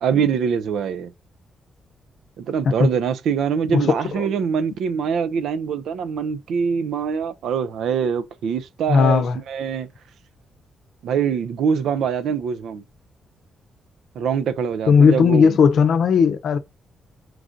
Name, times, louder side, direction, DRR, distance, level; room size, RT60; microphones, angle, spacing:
voice 1, 0.0-1.1 2.4-9.9 11.0-12.8 14.2-15.6, right 7 dB, 80° right, 0.5 m, -24 dB
voice 2, 8.9-9.4 14.9-16.6, left 6 dB, 70° left, 0.6 m, -16 dB
4.6 x 2.5 x 3.8 m
supercardioid pair, 65°, 0 cm